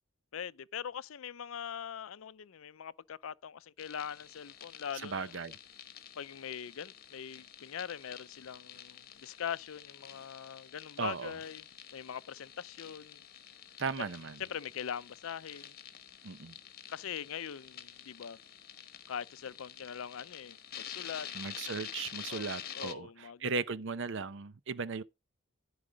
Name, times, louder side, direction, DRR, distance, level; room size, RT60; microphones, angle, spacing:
voice 1, 0.3-5.3 6.2-13.3 14.0-14.1 14.4-15.7 16.9-18.4 19.1-21.3 22.3-23.5, left 8 dB, 75° left, 0.5 m, -42 dB
sound 1, 3.8-22.9, left 9 dB, 45° left, 1.1 m, -49 dB
voice 2, 5.0-5.5 11.0-11.3 13.8-14.4 16.2-16.6 21.3-25.0, right 5 dB, 60° right, 0.7 m, -37 dB
14.0 x 4.9 x 5.0 m
head